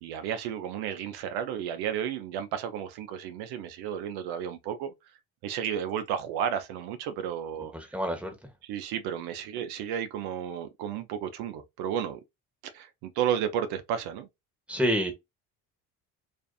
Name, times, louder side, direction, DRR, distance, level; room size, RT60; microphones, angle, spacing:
voice 1, 0.0-4.9 5.4-7.7 8.6-12.2 12.7-14.3, right 9 dB, 80° right, 0.5 m, -32 dB
voice 2, 7.7-8.3 14.7-15.1, equal, 5° right, 1.0 m, -28 dB
2.5 x 2.4 x 2.3 m
supercardioid pair, 75°, 38 cm